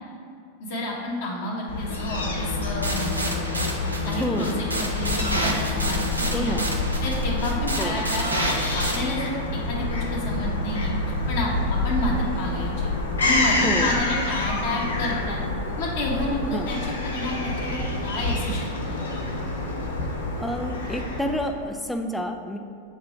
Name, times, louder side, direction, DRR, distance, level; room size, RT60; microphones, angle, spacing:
voice 1, 0.6-3.6 4.0-6.5 7.0-8.3 8.6-9.3 9.7-10.9 11.3-11.5 11.8-12.9 13.2-15.4 15.8-19.0, left 1 dB, 50° left, -3 dB, 1.6 m, -30 dB
Fowl / Gull seagull, 1.7-21.6, left 2 dB, 70° left, 0.9 m, -27 dB
sound 1, 2.8-9.0, right 1 dB, 85° right, 0.8 m, -29 dB
voice 2, 4.2-4.5 6.3-6.7 7.8-8.0 13.6-14.0 16.5-16.7 20.3-22.6, equal, 5° left, 4 dB, 0.4 m, -29 dB
7.7 x 3.2 x 5.9 m, 2.4 s
figure-of-eight pair, 90°, 0 cm